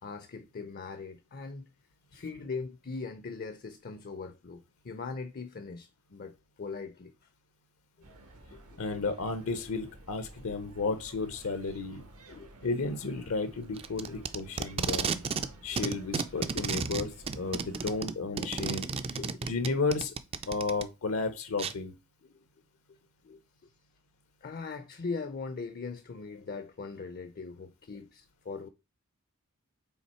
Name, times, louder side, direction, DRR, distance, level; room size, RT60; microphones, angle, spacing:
voice 1, 0.0-1.7 2.1-7.1 8.5-9.1 12.3-12.5 14.1-14.2 19.2-19.5 22.2-22.4 22.9-23.0 23.2-23.4 24.4-28.7, left 4 dB, 45° left, 0.5 m, -40 dB
sound 1, 8.0-18.0, right 1 dB, 85° right, 1.3 m, -53 dB
voice 2, 8.8-12.0 12.6-15.2 15.6-18.9 19.5-20.1 20.5-21.9, left 3 dB, 70° left, 0.8 m, -33 dB
Packing tape duct tape, 13.8-15.5 15.8-20.8 21.6-21.7, right 5 dB, 25° right, 0.4 m, -32 dB
5.7 x 3.9 x 4.3 m
head